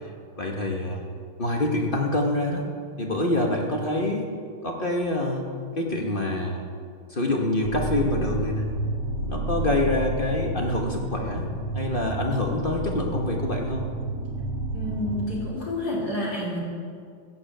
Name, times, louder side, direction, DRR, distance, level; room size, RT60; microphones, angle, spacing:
voice 1, 0.4-1.1 1.4-2.7 3.0-4.2 4.6-5.5 5.8-6.7 7.1-8.7 9.2-13.9, left 2 dB, 35° left, 0 dB, 1.0 m, -26 dB
sound 1, 7.6-15.5, right 2 dB, 60° right, 1.5 m, -31 dB
voice 2, 14.7-16.6, left 1 dB, 50° left, -6 dB, 3.5 m, -29 dB
15.0 x 7.4 x 7.8 m, 2.2 s
omnidirectional pair, 2.3 m